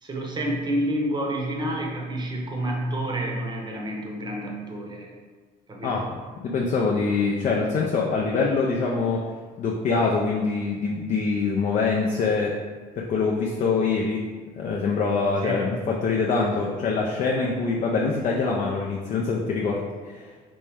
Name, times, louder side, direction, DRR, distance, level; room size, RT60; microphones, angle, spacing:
voice 1, 0.0-5.1 5.7-6.1 15.4-15.6, right 1 dB, 25° right, 0 dB, 0.7 m, -29 dB
voice 2, 6.4-9.2 9.6-12.6 13.0-14.2 14.6-20.3, left 4 dB, 45° left, -2 dB, 0.4 m, -24 dB
3.2 x 3.1 x 3.4 m, 1.5 s
cardioid pair, 110°, 17 cm